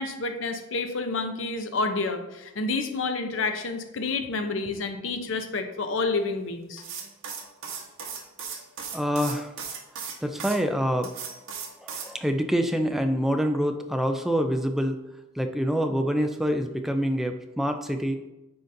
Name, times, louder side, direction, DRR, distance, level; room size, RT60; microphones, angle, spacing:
voice 1, 0.0-6.8, left 3 dB, 75° left, 7 dB, 0.6 m, -29 dB
sound 1, 6.8-10.6 11.0-12.1, right 6 dB, 80° right, 1.0 m, -37 dB
voice 2, 8.9-9.5 10.2-11.1 11.8-15.0 15.4-18.2, equal, ahead, 5 dB, 0.4 m, -26 dB
9.4 x 3.9 x 2.6 m, 0.97 s
head